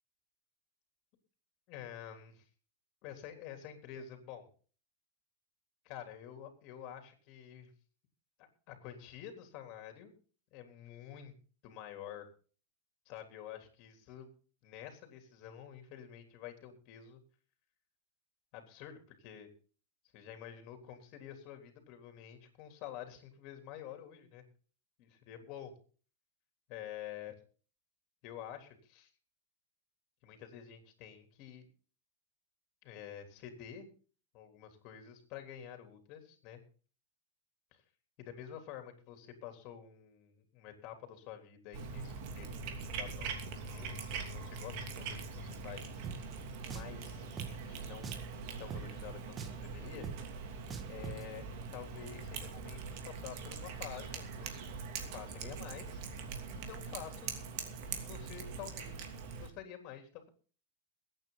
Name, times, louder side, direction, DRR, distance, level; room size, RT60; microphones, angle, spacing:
voice 1, 1.7-2.5 3.0-4.5 5.8-7.7 8.4-10.1 10.5-11.3 11.6-12.3 13.1-14.3 14.6-17.2 18.5-19.5 20.1-24.4 25.0-25.7 26.7-27.3 28.2-29.1 30.2-31.6 32.8-33.9 34.3-36.6 37.7-37.8 38.2-43.4 43.7-45.9 46.7-48.2 48.6-50.1 50.9-54.6 55.1-56.0 56.5-57.3 57.9-59.1 59.4-60.3, left 10 dB, 45° left, 6 dB, 3.5 m, -49 dB
Cat, 41.7-59.5, right 5 dB, 50° right, 2.8 m, -43 dB
Drum, 46.0-46.2 46.7-47.0 47.4-47.5 48.0-48.3 48.7-48.8 49.4-49.6 50.0-50.2 50.7-51.2, right 6 dB, 20° right, 1.2 m, -42 dB
22.0 x 9.1 x 4.0 m, 0.40 s
supercardioid pair, 145°, 0 cm